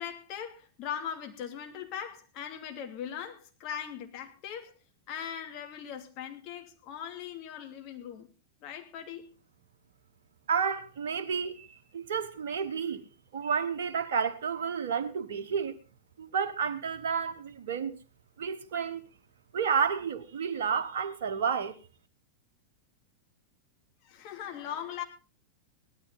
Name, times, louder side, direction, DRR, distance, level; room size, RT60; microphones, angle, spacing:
voice 1, 0.0-4.7 5.1-8.3 8.6-9.3 24.0-25.0, left 9 dB, 40° left, 2.8 m, -40 dB
voice 2, 10.5-13.1 13.3-15.7 16.2-18.0 18.4-19.0 19.5-21.8, right 6 dB, 60° right, 1.2 m, -31 dB
18.0 x 12.5 x 3.9 m
figure-of-eight pair, 90°, 0 cm